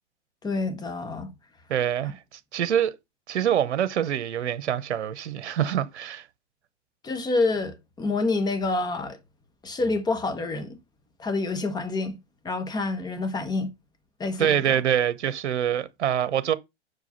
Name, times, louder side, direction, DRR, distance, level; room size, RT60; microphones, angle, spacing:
voice 1, 0.4-1.3 7.0-9.2 9.6-10.8 11.2-12.2 12.4-13.7 14.2-14.8, left 3 dB, 10° left, 1.1 m, -27 dB
voice 2, 1.7-3.0 3.3-6.3 14.4-16.5, right 9 dB, 70° right, 0.9 m, -25 dB
6.3 x 4.8 x 5.4 m
hypercardioid pair, 110°, 35 cm